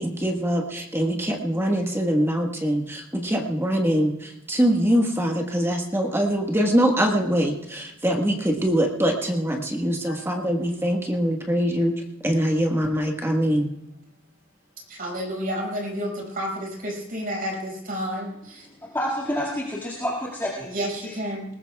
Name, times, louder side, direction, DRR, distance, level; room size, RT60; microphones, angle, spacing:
voice 1, 0.0-13.7, equal, 10° right, 1 dB, 1.4 m, -23 dB
voice 2, 14.9-18.7 20.6-21.5, equal, 40° right, -1 dB, 5.9 m, -30 dB
voice 3, 18.8-20.7 21.0-21.2, equal, 10° left, -5 dB, 2.1 m, -28 dB
21.0 x 19.0 x 2.3 m, 0.88 s
head